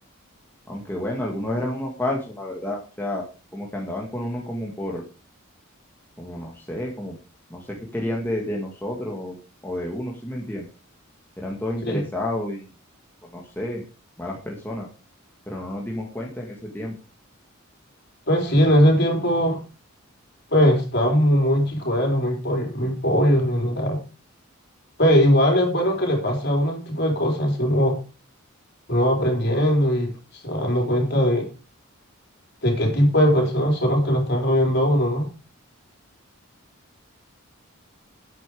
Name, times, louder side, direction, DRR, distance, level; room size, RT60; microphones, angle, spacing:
voice 1, 0.7-3.3 3.5-5.0 6.2-7.1 7.5-9.3 9.6-10.7 11.4-12.7 13.3-13.8 14.2-14.9 15.5-16.9, left 1 dB, 10° left, -2 dB, 2.0 m, -30 dB
voice 2, 18.3-19.6 20.5-24.0 25.0-28.0 28.9-30.1 30.4-31.5 32.6-35.3, equal, 50° left, 1 dB, 4.2 m, -20 dB
11.0 x 8.8 x 4.9 m, 0.33 s
head